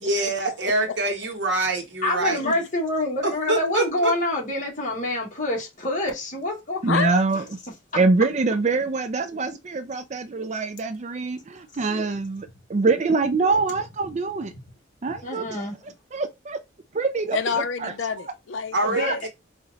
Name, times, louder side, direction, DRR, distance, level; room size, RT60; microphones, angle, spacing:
voice 1, 0.0-2.6 3.2-4.1 18.7-19.3, right 2 dB, 65° right, 1.2 m, -25 dB
voice 2, 0.6-1.0 2.2-2.7 6.9-7.1 17.3-19.2, left 6 dB, 75° left, 0.5 m, -29 dB
voice 3, 2.0-6.8 15.2-15.7 18.8-19.2, left 1 dB, 40° left, 1.7 m, -26 dB
voice 4, 6.8-7.4 7.9-14.5 15.0-15.7 16.1-16.6 16.9-17.4 17.8-17.9 19.0-19.1, right 3 dB, 35° right, 0.4 m, -24 dB
4.3 x 2.5 x 3.9 m
head